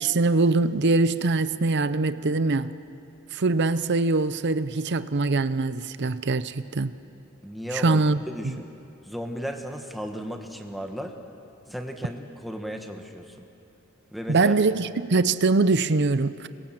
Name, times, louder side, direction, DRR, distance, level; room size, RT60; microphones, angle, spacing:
voice 1, 0.0-2.8 3.3-6.9 7.7-8.2 8.4-8.5 14.3-16.5, right 3 dB, 55° right, 0.7 m, -23 dB
voice 2, 7.4-8.7 9.0-11.1 11.7-13.5 14.1-14.5, equal, ahead, 1.7 m, -35 dB
26.5 x 22.0 x 7.7 m
head